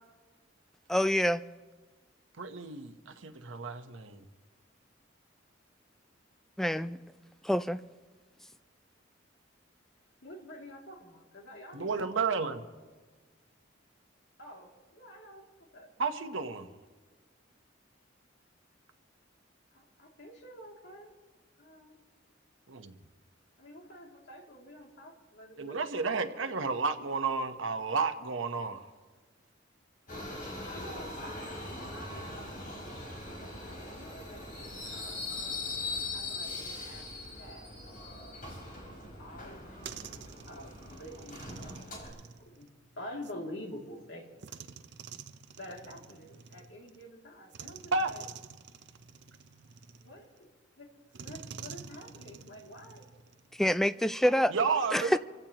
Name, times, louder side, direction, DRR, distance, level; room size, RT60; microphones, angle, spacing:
voice 1, 0.9-1.4 6.6-7.0 7.4-7.8 53.6-54.5 54.9-55.2, equal, ahead, 0.3 m, -26 dB
voice 2, 2.4-4.2 11.7-12.6 16.0-16.7 22.7-22.9 25.6-28.9 47.9-48.1 54.5-55.2, right 4 dB, 90° right, 1.0 m, -32 dB
voice 3, 10.2-12.5 14.4-15.9 19.7-21.1 21.6-22.0 23.6-26.5 30.7-32.5 33.4-35.2 36.1-37.1 37.4-37.7 39.2-42.0 42.4-42.7 43.0-44.4 45.6-48.2 49.9-50.5 50.8-50.9 51.2-53.1, left 1 dB, 65° left, 2.7 m, -48 dB
Subway metro underground, 30.1-42.1, left 2 dB, 45° left, 4.6 m, -41 dB
sound 1, 39.5-43.4 44.4-47.0 47.5-50.4 51.1-53.6, right 6 dB, 60° right, 0.6 m, -49 dB
27.0 x 16.0 x 3.0 m
head